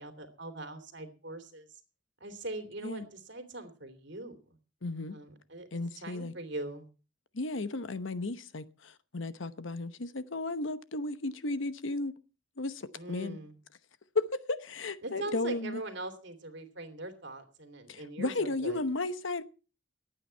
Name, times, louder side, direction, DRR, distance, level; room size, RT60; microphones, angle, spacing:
voice 1, 0.0-1.7 2.2-4.4 5.1-5.7 6.0-6.9 12.9-13.5 15.0-18.8, right 1 dB, 60° right, 2.8 m, -41 dB
voice 2, 4.8-5.2 5.7-6.3 7.3-12.1 12.6-13.4 14.1-15.8 17.9-19.4, left 2 dB, 70° left, 1.0 m, -34 dB
23.5 x 9.1 x 4.5 m
head